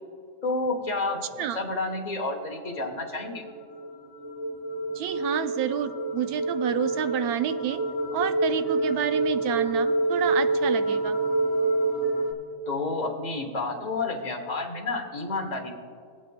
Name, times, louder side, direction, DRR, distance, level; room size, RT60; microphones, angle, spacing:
voice 1, 0.4-3.4 12.7-15.7, left 3 dB, 35° left, 2 dB, 1.1 m, -30 dB
sound 1, 2.7-12.3, right 2 dB, 20° right, 0.7 m, -27 dB
voice 2, 5.0-7.8 8.1-11.2, right 9 dB, 85° right, 10 dB, 1.1 m, -29 dB
17.5 x 8.8 x 2.2 m, 2.2 s
omnidirectional pair, 1.5 m